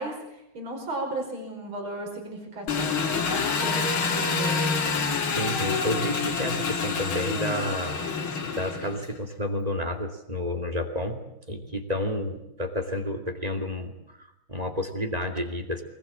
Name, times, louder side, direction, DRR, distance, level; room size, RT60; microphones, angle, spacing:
voice 1, 0.0-4.8, right 2 dB, 70° right, 2 dB, 5.8 m, -35 dB
Engine, 2.7-9.2, left 5 dB, 70° left, 3.0 m, -27 dB
voice 2, 5.3-8.0 8.5-11.2 11.5-15.8, left 1 dB, 20° right, 5 dB, 2.4 m, -30 dB
23.5 x 20.5 x 8.6 m, 0.83 s
omnidirectional pair, 2.3 m